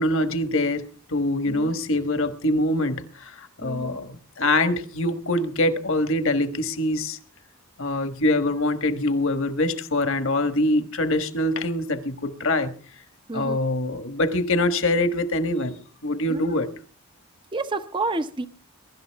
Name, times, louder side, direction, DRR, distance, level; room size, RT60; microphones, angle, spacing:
voice 1, 0.0-7.2 7.8-12.7 13.3-16.7, left 1 dB, 60° left, 1.4 m, -24 dB
voice 2, 3.6-4.0 13.3-13.6 16.3-16.6 17.5-18.5, right 2 dB, 20° right, 0.7 m, -29 dB
22.5 x 12.0 x 3.5 m
head